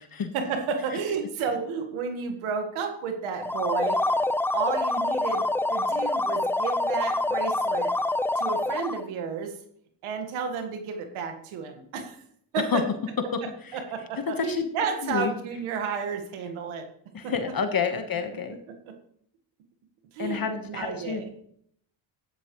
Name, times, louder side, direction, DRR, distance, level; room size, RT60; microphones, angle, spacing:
voice 1, 0.3-4.0 4.5-5.4 5.7-7.9 8.4-9.5 10.0-12.2 12.5-12.9 13.7-16.8 17.2-17.3 18.9-19.0 20.1-21.3, right 5 dB, 90° right, 5 dB, 1.7 m, -31 dB
sound 1, 3.4-9.1, left 2 dB, 5° left, 0.3 m, -26 dB
voice 2, 17.1-18.6 20.2-21.3, left 6 dB, 45° left, 7 dB, 1.4 m, -28 dB
13.5 x 10.0 x 3.2 m, 0.67 s
supercardioid pair, 65°, 48 cm